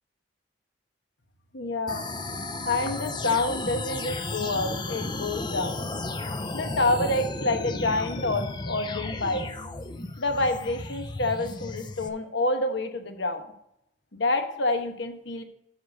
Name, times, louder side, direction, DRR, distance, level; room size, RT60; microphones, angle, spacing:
voice 1, 1.5-2.0 2.6-5.8 6.5-9.5 10.2-13.4 14.1-15.4, left 2 dB, 65° left, 6 dB, 1.1 m, -28 dB
sound 1, 1.9-12.1, left 2 dB, 20° left, 0.5 m, -34 dB
8.0 x 6.6 x 5.3 m, 0.77 s
head